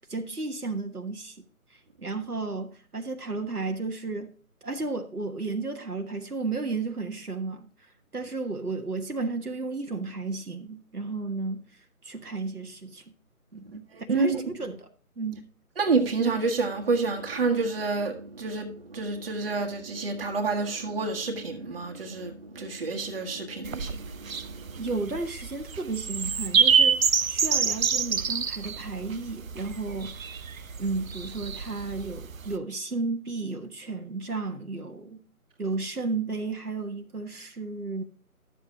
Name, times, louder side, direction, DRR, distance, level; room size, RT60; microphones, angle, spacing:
voice 1, 0.1-1.4 1.7-4.3 4.6-7.7 8.1-13.0 13.5-14.9 15.2-15.4 24.8-30.5 30.8-35.2 35.6-38.0, right 3 dB, 90° right, 1.5 m, -33 dB
voice 2, 13.9-14.4 15.8-24.6, right 4 dB, 40° right, 1.7 m, -29 dB
sound 1, 23.6-32.5, right 6 dB, 65° right, 0.7 m, -27 dB
12.5 x 7.6 x 2.8 m
figure-of-eight pair, 150°, 44 cm